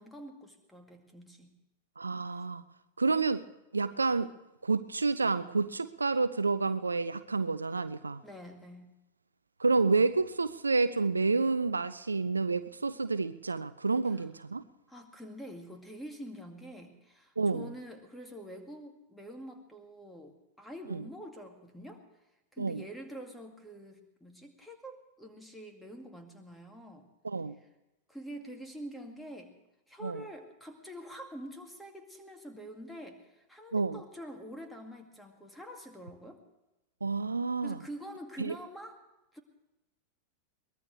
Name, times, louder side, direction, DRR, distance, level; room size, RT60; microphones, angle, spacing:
voice 1, 0.0-1.6 8.2-8.9 14.1-14.3 14.9-22.0 22.5-27.1 27.6-27.7 28.1-29.5 29.9-36.4 37.6-39.0 39.3-39.4, equal, 5° left, 4 dB, 2.2 m, -46 dB
voice 2, 2.0-2.6 3.0-3.4 3.7-4.3 4.6-8.2 9.6-14.6 17.4-17.7 20.9-21.0 22.6-22.8 27.2-27.6 30.0-30.2 33.7-34.0 37.0-37.8 38.4-38.5, right 4 dB, 80° right, 14 dB, 0.5 m, -29 dB
22.5 x 19.5 x 3.3 m, 0.94 s
figure-of-eight pair, 90°, 0 cm